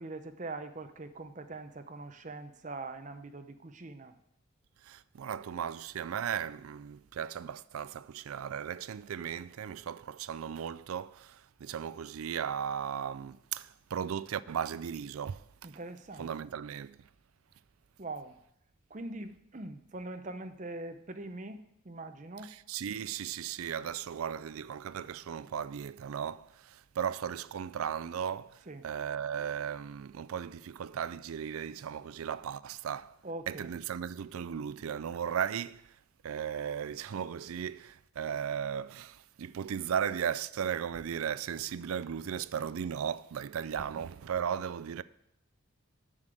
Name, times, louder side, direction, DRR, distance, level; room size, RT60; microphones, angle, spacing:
voice 1, 0.0-4.1 15.6-16.3 18.0-18.3 18.9-22.5 28.7-28.9 33.2-33.7 43.8-43.9, right 2 dB, 35° right, 0.7 m, -42 dB
voice 2, 4.8-15.5 16.2-17.0 22.4-33.2 33.5-35.9 36.2-45.0, right 8 dB, 90° right, 0.4 m, -36 dB
7.3 x 6.7 x 7.6 m
head